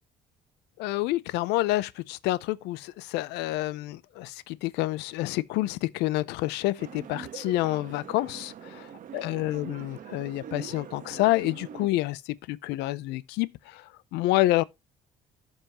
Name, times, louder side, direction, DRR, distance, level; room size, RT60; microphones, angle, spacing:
voice 1, 0.8-8.5 9.1-14.6, left 17 dB, 90° left, 0.5 m, -28 dB
sound 1, 6.8-11.9, right 9 dB, 55° right, 1.1 m, -43 dB
11.5 x 5.6 x 2.8 m
cardioid pair, 110°, 17 cm